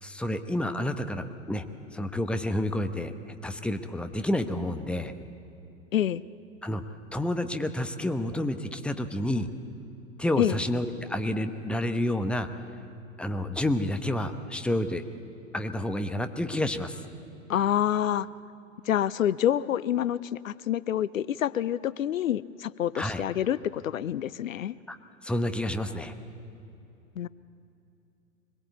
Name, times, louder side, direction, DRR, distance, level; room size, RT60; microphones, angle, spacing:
voice 1, 0.0-1.7 1.9-5.1 6.6-9.5 10.2-12.5 13.2-15.1 15.5-17.0 22.9-23.2 24.9-25.0 25.2-26.1, left 1 dB, 5° left, 9 dB, 1.0 m, -29 dB
voice 2, 5.9-6.2 10.4-10.6 17.5-18.3 18.8-24.7 27.2-27.3, left 11 dB, 75° left, 19 dB, 0.6 m, -27 dB
24.0 x 21.0 x 8.3 m, 2.8 s
figure-of-eight pair, 95°, 40 cm